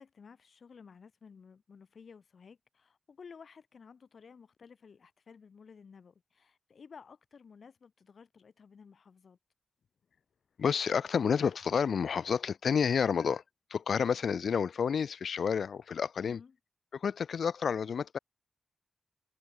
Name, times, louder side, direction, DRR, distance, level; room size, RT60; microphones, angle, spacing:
voice 1, 0.0-9.4 16.2-16.5, left 6 dB, 70° left, 4.0 m, -54 dB
voice 2, 10.6-13.4 13.7-16.4 16.9-18.2, left 6 dB, 85° left, 1.0 m, -30 dB
wide cardioid pair, 115°, 0 cm